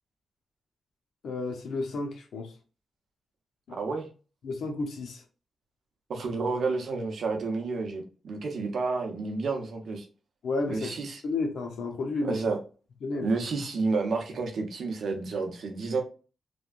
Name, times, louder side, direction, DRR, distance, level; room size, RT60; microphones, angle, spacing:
voice 1, 1.2-2.5 3.7-3.8 4.4-5.2 10.4-11.0 11.2-12.4 13.0-13.3, left 3 dB, 85° left, 0.8 m, -32 dB
voice 2, 3.8-4.1 6.1-10.1 10.7-11.2 12.2-12.6 13.2-16.0, right 4 dB, 70° right, 0.7 m, -30 dB
3.3 x 2.2 x 2.5 m
wide cardioid pair, 120°, 0 cm